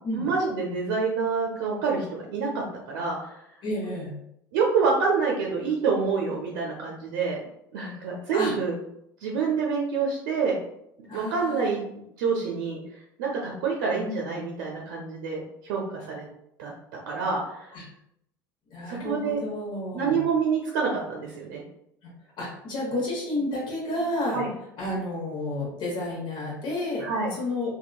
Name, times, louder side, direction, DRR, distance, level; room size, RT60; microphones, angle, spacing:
voice 1, 0.1-3.4 4.5-7.4 7.7-8.8 9.2-10.5 11.1-12.8 13.2-16.2 16.6-16.7 17.1-17.8 18.9-19.4 19.9-21.6 24.3-24.5 27.0-27.3, right 5 dB, 65° right, -2 dB, 0.6 m, -27 dB
voice 2, 3.6-4.2 8.3-8.5 11.1-11.8 17.7-17.8 18.7-20.2 22.0-24.4 24.8-27.1 27.4-27.7, left 1 dB, 45° left, -4 dB, 1.1 m, -31 dB
3.6 x 2.2 x 2.3 m, 0.76 s
figure-of-eight pair, 70°, 11 cm